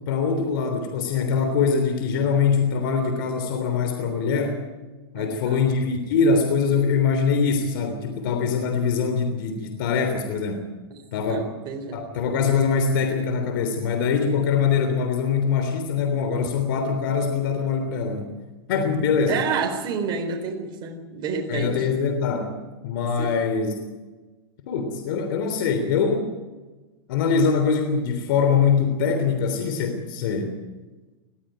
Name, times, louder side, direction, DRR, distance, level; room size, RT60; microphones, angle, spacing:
voice 1, 0.1-4.6 5.1-10.6 11.1-11.4 11.9-18.3 18.7-19.4 21.5-22.5 22.8-23.8 24.7-26.3 27.1-30.6, left 5 dB, 65° left, 6 dB, 3.4 m, -23 dB
voice 2, 5.1-5.6 11.3-11.9 19.3-21.9 23.2-23.3, right 5 dB, 40° right, 3 dB, 4.0 m, -29 dB
20.5 x 14.5 x 9.2 m, 1.2 s
hypercardioid pair, 130°, 12 cm